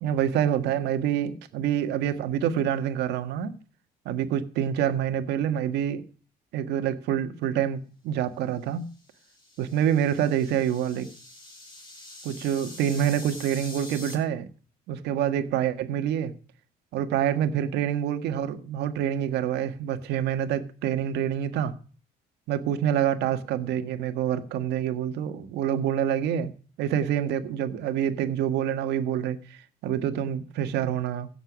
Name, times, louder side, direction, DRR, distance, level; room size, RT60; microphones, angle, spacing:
voice 1, 0.0-3.6 4.0-6.0 6.5-8.8 9.6-11.1 12.2-14.5 14.9-16.3 16.9-21.7 22.5-26.5 26.8-31.3, right 9 dB, 85° right, 1.7 m, -27 dB
sound 1, 9.0-14.1, left 2 dB, 30° left, 6.1 m, -45 dB
16.5 x 7.2 x 6.2 m
cardioid pair, 110°, 17 cm